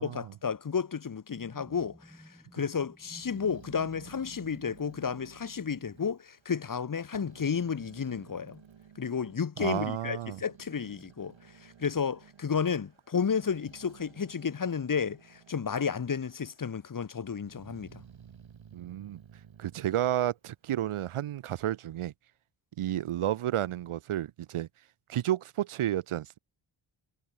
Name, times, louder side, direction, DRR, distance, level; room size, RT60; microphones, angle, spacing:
voice 1, 0.0-2.0 2.5-8.6 9.0-11.3 11.6-18.0, left 6 dB, 40° left, 1.3 m, -32 dB
sound 1, 1.3-5.2, equal, ahead, 4.8 m, -54 dB
Growling, 3.0-6.8 7.1-9.4 10.0-15.8 16.2-16.9 17.3-21.1, right 8 dB, 65° right, 2.4 m, -55 dB
voice 2, 9.6-10.4 18.7-19.2 19.6-22.1 22.8-24.7 25.1-26.4, right 12 dB, 85° right, 0.8 m, -31 dB
wide cardioid pair, 150°, 49 cm